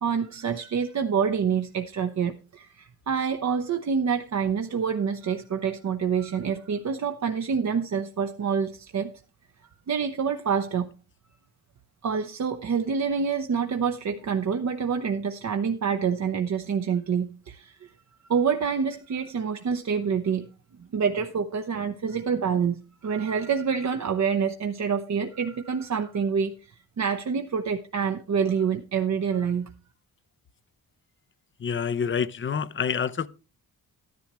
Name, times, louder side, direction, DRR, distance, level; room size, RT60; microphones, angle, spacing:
voice 1, 0.0-9.1 9.9-10.9 12.0-17.9 18.2-20.5 20.9-29.7, right 6 dB, 50° right, 0.8 m, -27 dB
voice 2, 31.6-33.3, left 7 dB, 35° left, 0.6 m, -27 dB
12.5 x 10.5 x 3.0 m
cardioid pair, 115°, 37 cm